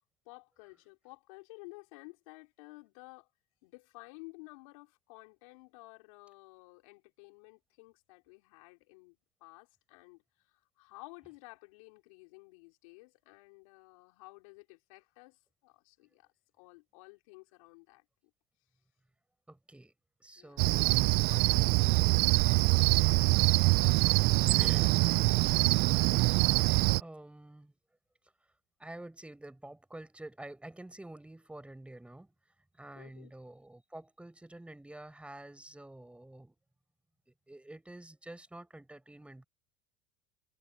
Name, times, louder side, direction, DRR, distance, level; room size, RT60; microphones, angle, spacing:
voice 1, 0.2-3.3 3.6-16.3 16.5-18.1 20.3-20.7 21.2-23.4 23.7-24.2 24.5-24.9 25.4-25.8 32.9-33.3, left 27 dB, 75° left, 4.3 m, -54 dB
voice 2, 19.5-19.9 20.2-21.2 24.5-25.0 27.0-27.8 28.8-32.3 32.7-36.6 37.3-39.4, right 1 dB, 5° right, 5.5 m, -48 dB
Cricket, 20.6-27.0, right 26 dB, 65° right, 0.6 m, -25 dB
supercardioid pair, 90°, 17 cm